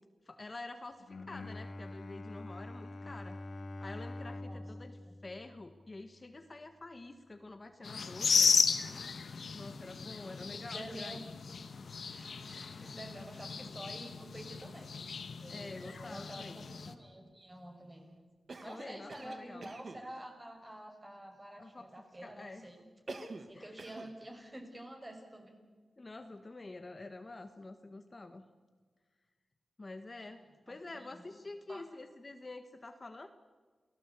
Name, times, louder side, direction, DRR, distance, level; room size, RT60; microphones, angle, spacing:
voice 1, 0.2-3.4 3.8-5.0 5.2-8.6 9.5-11.3 15.5-16.6 18.6-19.7 21.6-21.8 22.2-22.7 23.1-23.8 26.0-28.5 29.8-33.3, left 2 dB, 35° left, 7 dB, 1.5 m, -47 dB
Bowed string instrument, 1.0-6.3, left 2 dB, 55° left, 1.9 m, -45 dB
sound 1, 7.8-16.9, left 5 dB, 70° left, 1.5 m, -34 dB
voice 2, 10.2-11.2 12.0-14.9 15.4-18.1 18.6-22.9 23.5-25.6 30.7-31.2 31.7-31.8, right 1 dB, 20° right, 3 dB, 5.8 m, -49 dB
Cough, 18.5-20.1 23.1-23.5 23.8-24.2, right 3 dB, 55° right, 1.9 m, -47 dB
28.5 x 17.5 x 8.4 m, 1.4 s
wide cardioid pair, 85°, 0 cm